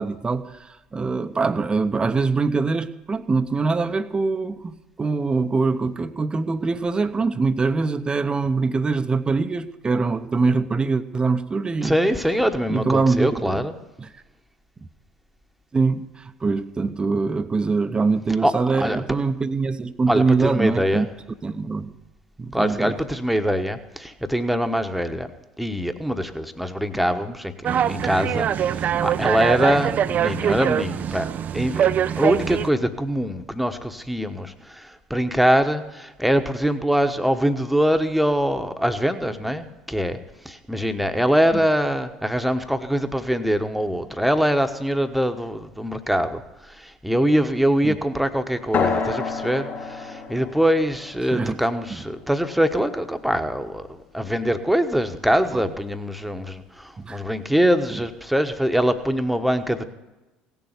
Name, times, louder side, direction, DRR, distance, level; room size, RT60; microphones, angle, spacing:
voice 1, 0.0-11.9 12.7-13.7 14.0-14.1 15.7-21.1 21.4-21.9 22.4-23.0 30.5-30.6 47.8-48.0 51.3-51.6 55.5-55.6 57.0-57.2, right 4 dB, 25° right, 12 dB, 0.8 m, -23 dB
voice 2, 11.8-13.7 18.4-18.5 18.8-19.0 20.1-21.1 22.5-25.3 25.6-31.3 31.5-31.9 32.2-40.2 40.4-59.8, equal, ahead, 7 dB, 1.2 m, -23 dB
sound 1, 27.6-32.7, right 9 dB, 45° right, 0.4 m, -23 dB
sound 2, 48.7-53.8, left 5 dB, 50° left, 3.6 m, -30 dB
16.5 x 7.1 x 8.1 m, 1.1 s
hypercardioid pair, 65°, 4 cm